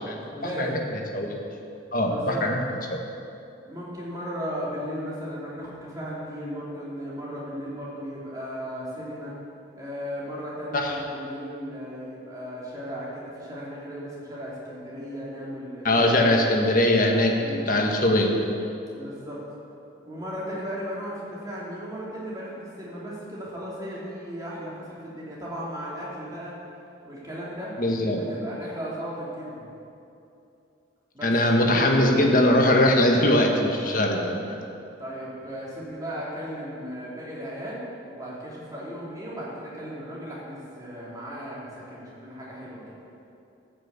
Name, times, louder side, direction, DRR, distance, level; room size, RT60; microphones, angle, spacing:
voice 1, 0.3-0.8 2.0-2.5 3.7-9.3 9.7-16.5 17.4-17.7 18.9-19.4 20.0-26.5 27.0-27.7 28.2-29.7 31.1-31.3 35.0-42.8, equal, 20° right, -7 dB, 2.9 m, -36 dB
voice 2, 1.9-2.6 10.7-10.9 15.8-17.4 17.7-18.3 27.8-28.2 31.2-34.4, left 1 dB, 45° left, 1 dB, 1.4 m, -21 dB
13.0 x 6.3 x 8.2 m, 2.8 s
head